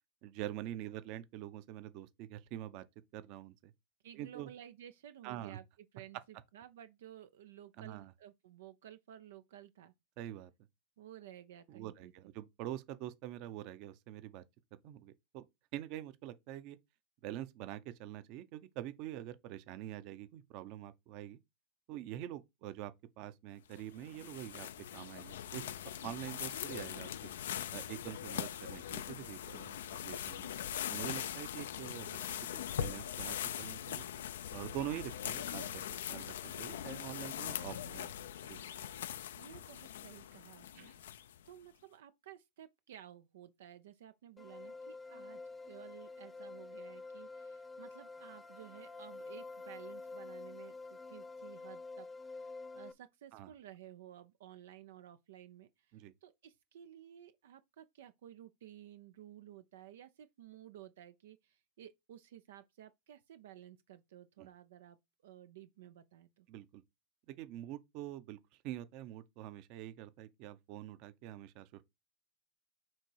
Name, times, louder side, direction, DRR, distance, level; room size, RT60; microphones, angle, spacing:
voice 1, 0.2-2.8 3.1-3.7 4.1-4.5 5.2-5.6 7.8-8.1 10.2-10.5 11.7-14.4 14.8-15.5 15.7-16.8 17.2-21.4 21.9-25.7 26.0-27.3 27.7-30.5 30.9-32.2 32.5-34.1 34.5-35.7 36.1-38.1 38.4-38.6 40.7-41.0 53.3-53.5 55.9-56.1 64.4-64.5 66.5-66.8 67.3-68.4 68.6-71.8, right 13 dB, 50° right, 0.9 m, -45 dB
voice 2, 4.0-5.6 5.9-9.9 11.0-12.1 32.0-32.4 39.3-40.9 41.5-65.0 65.2-66.5, right 11 dB, 80° right, 0.6 m, -55 dB
sound 1, 23.7-41.5, left 10 dB, 85° left, 0.6 m, -41 dB
sound 2, 44.4-52.9, left 3 dB, 15° left, 0.8 m, -48 dB
7.5 x 3.0 x 4.6 m
supercardioid pair, 135°, 0 cm